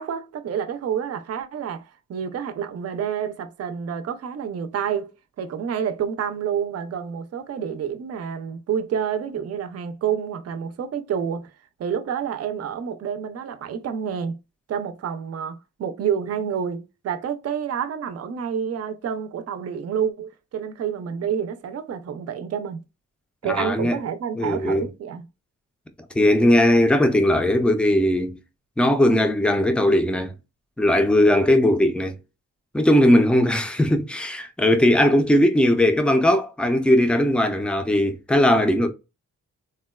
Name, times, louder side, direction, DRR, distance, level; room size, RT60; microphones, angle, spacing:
voice 1, 0.0-5.1 5.4-11.5 11.8-14.4 14.7-22.8 23.4-25.3, right 8 dB, 55° right, 0.5 m, -28 dB
voice 2, 23.4-24.0 24.4-24.9 26.1-28.4 28.8-30.3 30.8-32.1 32.7-38.9, left 1 dB, 5° left, 0.4 m, -19 dB
3.6 x 2.1 x 2.2 m
wide cardioid pair, 135°, 29 cm